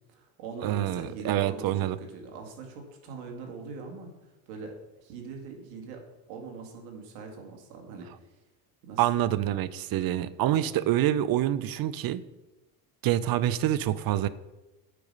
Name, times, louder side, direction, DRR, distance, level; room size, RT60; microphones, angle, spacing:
voice 1, 0.1-4.7 5.0-6.0 6.3-8.1 8.8-9.1 10.4-10.8, right 4 dB, 75° right, 2 dB, 2.2 m, -42 dB
voice 2, 0.6-2.0 9.0-12.2 13.0-14.3, right 12 dB, 45° right, 16 dB, 0.6 m, -26 dB
9.1 x 4.9 x 5.5 m, 1.0 s
supercardioid pair, 85°, 48 cm